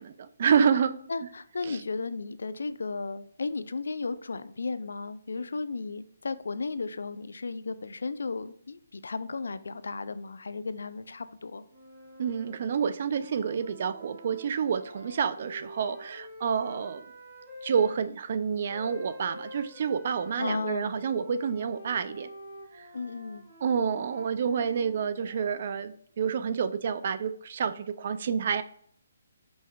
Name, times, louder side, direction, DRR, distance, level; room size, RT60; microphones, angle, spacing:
voice 1, 0.0-1.0 1.6-1.8 12.2-17.0 17.6-22.3 22.8-22.9 23.6-28.6, right 7 dB, 45° right, 0.3 m, -28 dB
voice 2, 1.1-11.6 20.4-20.9 22.9-23.4, left 3 dB, 90° left, 0.3 m, -34 dB
sound 1, 11.7-18.0 18.7-25.8, equal, 30° right, 1.7 m, -47 dB
5.3 x 3.2 x 2.3 m
hypercardioid pair, 165°, 0 cm